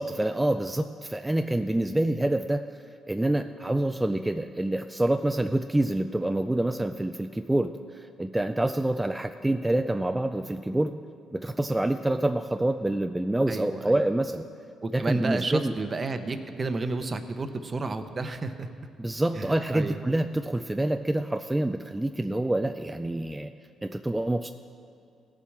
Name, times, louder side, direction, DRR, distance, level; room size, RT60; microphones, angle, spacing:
voice 1, 0.0-2.7 3.1-11.0 11.3-14.4 14.9-15.7 19.0-23.5 23.8-24.5, right 1 dB, 10° right, 7 dB, 0.3 m, -27 dB
voice 2, 13.5-14.0 14.8-18.7 19.3-20.0, right 3 dB, 35° right, 8 dB, 0.8 m, -31 dB
17.5 x 7.2 x 4.7 m, 2.5 s
cardioid pair, 90°, 0 cm